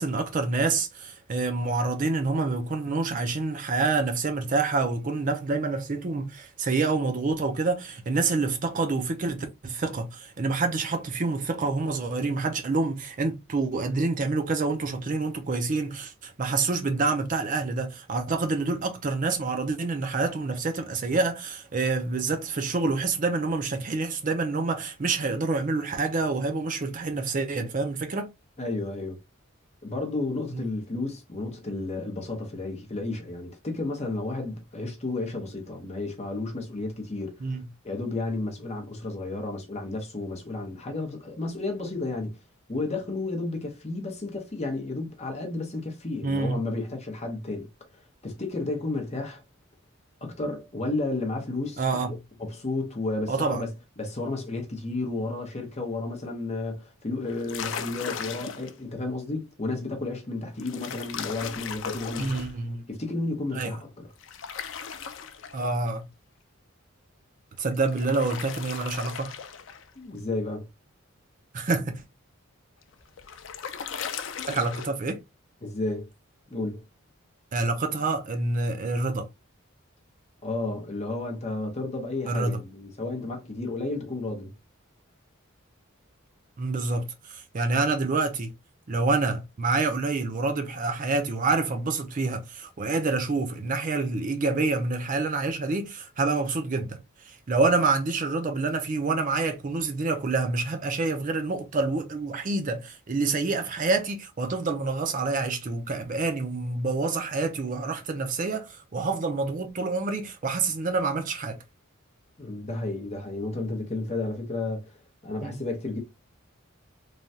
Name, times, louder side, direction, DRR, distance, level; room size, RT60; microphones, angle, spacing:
voice 1, 0.0-28.3 30.5-30.6 37.4-37.6 46.2-46.6 51.8-52.2 53.3-53.6 62.2-62.9 63.5-63.8 65.5-66.0 67.6-69.3 71.5-72.0 74.5-75.2 77.5-79.3 82.3-82.6 86.6-88.5 88.9-111.6 115.4-115.6, right 3 dB, 40° right, 0.4 m, -27 dB
voice 2, 28.6-29.2 29.8-42.4 42.7-47.7 47.9-49.4 50.2-51.8 52.4-62.4 62.9-64.1 70.0-70.7 75.6-76.1 76.5-76.8 80.4-84.5 112.4-114.9 115.2-116.0, left 2 dB, 30° left, 0.7 m, -32 dB
sound 1, 57.3-58.8 60.6-62.6 64.2-65.9 67.7-69.9 72.8-74.9, left 7 dB, 60° left, 0.4 m, -37 dB
3.2 x 2.3 x 2.6 m
head